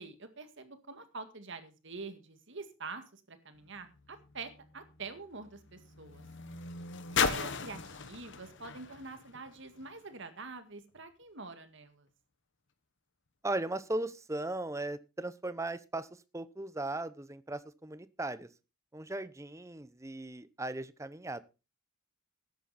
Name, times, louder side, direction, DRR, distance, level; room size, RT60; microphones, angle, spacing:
voice 1, 0.0-6.3 7.1-12.1, right 4 dB, 55° right, 9 dB, 2.0 m, -46 dB
sound 1, 3.6-10.1 11.0-11.1, left 5 dB, 55° left, 1.2 m, -38 dB
voice 2, 13.4-18.5 18.9-21.4, right 2 dB, 15° right, 15 dB, 0.7 m, -37 dB
13.5 x 10.5 x 4.2 m, 0.31 s
head